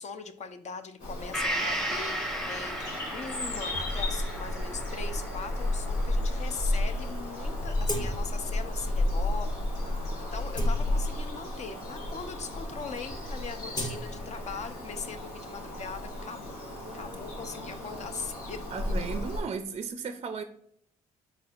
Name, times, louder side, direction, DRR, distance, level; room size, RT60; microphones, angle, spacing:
voice 1, 0.0-16.6 16.9-18.6, left 5 dB, 50° left, 0.6 m, -40 dB
Bird vocalization bird call bird song, 1.0-19.4, left 1 dB, 85° left, 1.3 m, -33 dB
Gong, 1.3-9.0 9.4-9.5, right 1 dB, ahead, 0.8 m, -37 dB
sound 1, 7.8-8.5 8.9-9.1 9.7-9.8 10.3-11.4 12.1-12.2 12.5-12.8 13.1-14.9 15.2-17.1, left 1 dB, 25° left, 1.0 m, -40 dB
voice 2, 18.7-20.4, right 5 dB, 40° right, 0.4 m, -35 dB
4.2 x 4.2 x 2.4 m
supercardioid pair, 60°, 16 cm